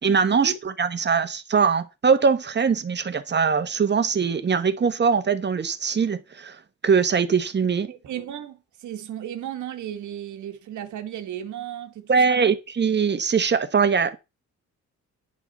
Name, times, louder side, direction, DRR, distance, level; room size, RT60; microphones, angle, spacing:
voice 1, 0.0-6.6 6.8-7.9 12.1-14.2, right 6 dB, 35° right, 1.4 m, -22 dB
voice 2, 7.9-12.6, right 11 dB, 75° right, 1.8 m, -35 dB
10.5 x 5.8 x 5.5 m
cardioid pair, 90°, 30 cm